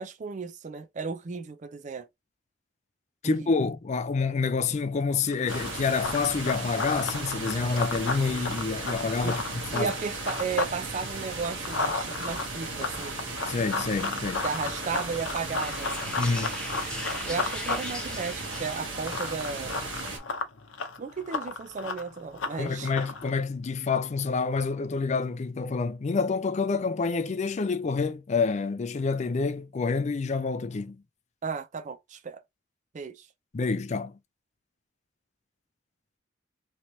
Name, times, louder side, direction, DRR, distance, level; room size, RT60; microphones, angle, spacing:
voice 1, 0.0-2.1 3.4-3.5 9.2-9.3 9.7-13.2 14.4-16.0 17.3-19.8 21.0-22.9 31.4-32.4 32.9-33.3, right 5 dB, 40° right, 0.4 m, -34 dB
voice 2, 3.2-9.9 13.5-14.4 16.2-16.6 22.6-31.0 33.5-34.2, left 4 dB, 35° left, 0.4 m, -28 dB
Run, 5.3-10.8 11.1-23.3, left 4 dB, 90° left, 0.6 m, -34 dB
sound 1, 5.5-20.2, right 3 dB, 80° right, 1.2 m, -36 dB
sound 2, 15.6-19.2, left 1 dB, 5° left, 0.7 m, -39 dB
3.1 x 2.9 x 2.6 m
head